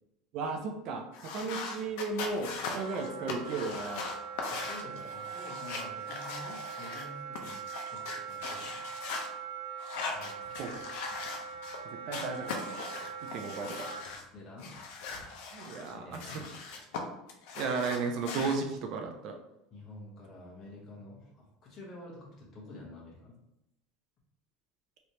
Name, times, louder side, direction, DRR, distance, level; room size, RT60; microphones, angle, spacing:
voice 1, 0.3-1.0 1.3-4.1 10.6-10.8 12.1-12.8 13.3-14.0 15.5-16.4 17.6-19.4, right 4 dB, 45° right, 4 dB, 0.4 m, -34 dB
sound 1, 1.1-7.0 7.3-9.3 9.8-11.8 12.1-14.2 14.6-17.0 17.3-18.6, left 4 dB, 70° left, 0.6 m, -40 dB
Wind instrument woodwind instrument, 2.8-14.0, right 7 dB, 75° right, 0.8 m, -42 dB
voice 2, 4.6-7.6 7.9-8.9 10.1-10.8 14.3-14.7 15.8-16.4 19.7-23.4, left 2 dB, 30° left, -4 dB, 1.1 m, -49 dB
3.1 x 3.0 x 2.7 m, 0.88 s
cardioid pair, 160°, 0 cm